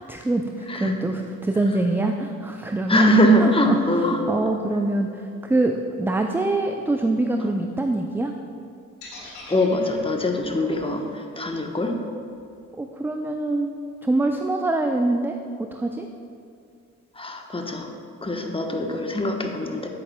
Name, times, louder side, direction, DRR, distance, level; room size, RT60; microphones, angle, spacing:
voice 1, 0.1-3.1 3.4-3.8 4.3-8.3 12.8-13.8 14.0-16.1, right 2 dB, 5° right, 4 dB, 0.3 m, -24 dB
voice 2, 0.7-1.1 2.9-4.4 9.2-12.0 17.1-17.9 18.2-19.9, equal, 15° left, 3 dB, 1.0 m, -22 dB
sound 1, 9.0-13.1, left 3 dB, 70° left, 1.8 m, -45 dB
9.7 x 8.3 x 2.2 m, 2.4 s
hypercardioid pair, 45°, 40 cm